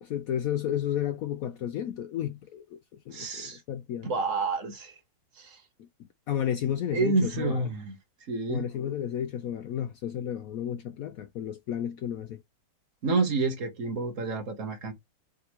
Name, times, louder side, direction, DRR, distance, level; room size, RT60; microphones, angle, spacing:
voice 1, 0.0-2.6 2.9-4.1 5.8-5.9 6.3-7.6 8.5-12.4, left 10 dB, 70° left, 0.8 m, -32 dB
voice 2, 3.1-3.6 4.0-4.9 5.4-5.6 6.9-8.0 8.3-8.7 13.0-14.9, right 3 dB, 55° right, 1.2 m, -29 dB
5.0 x 3.1 x 3.0 m
omnidirectional pair, 1.9 m